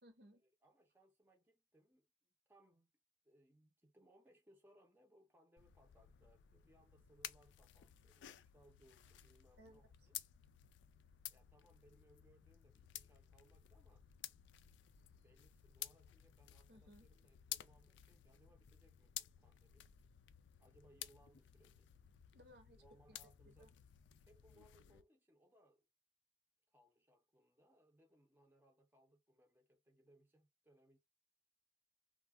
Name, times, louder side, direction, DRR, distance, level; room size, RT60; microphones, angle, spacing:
voice 1, 0.0-0.4 9.6-10.1 16.7-17.1 22.3-22.8 23.1-23.2 23.5-23.7, equal, 65° right, 0.8 m, -63 dB
voice 2, 0.6-2.1 2.5-2.9 3.2-10.2 11.3-14.1 14.6-19.9 20.6-21.9 22.8-23.7 24.2-25.9 26.7-31.0, right 1 dB, 10° right, 0.5 m, -70 dB
sound 1, 5.6-25.0, left 13 dB, 80° left, 0.3 m, -54 dB
2.3 x 2.2 x 3.4 m
head